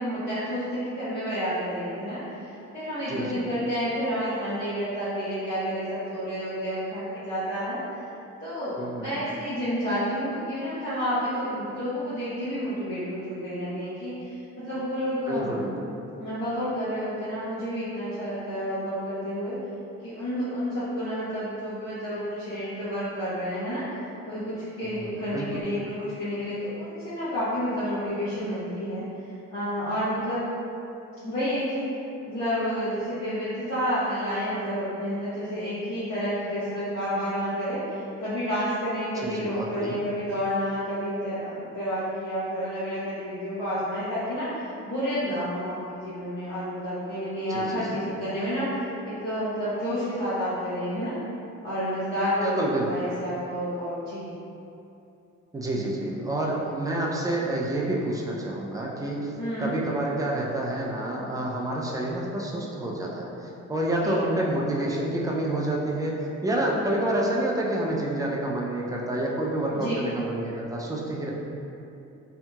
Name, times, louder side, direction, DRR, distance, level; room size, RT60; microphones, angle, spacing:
voice 1, 0.0-8.0 8.4-15.5 16.2-19.6 20.0-23.8 24.3-29.0 29.5-30.5 31.2-31.9 32.3-48.7 49.0-51.1 51.6-52.6 52.9-54.3 59.4-59.7 64.0-64.2 69.7-69.9, equal, 65° left, -15 dB, 1.1 m, -30 dB
voice 2, 3.1-3.5 8.8-9.2 15.3-15.7 24.8-25.6 39.1-40.0 47.5-48.0 52.4-53.0 55.5-59.3 59.6-66.2 66.4-71.3, right 1 dB, 10° right, -3 dB, 0.4 m, -28 dB
2.8 x 2.7 x 2.3 m, 2.8 s
cardioid pair, 90°, 30 cm